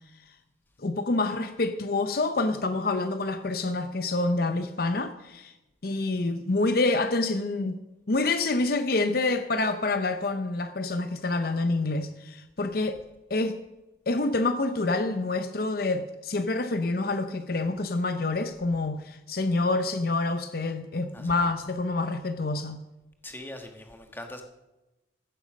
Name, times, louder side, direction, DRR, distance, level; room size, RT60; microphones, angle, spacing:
voice 1, 0.8-5.5 5.8-7.8 8.1-13.0 13.3-13.6 14.1-22.8, left 2 dB, 50° left, 9 dB, 0.6 m, -27 dB
voice 2, 21.1-21.5 23.2-24.4, left 1 dB, 10° left, 5 dB, 1.3 m, -42 dB
14.5 x 8.1 x 6.3 m, 1.0 s
head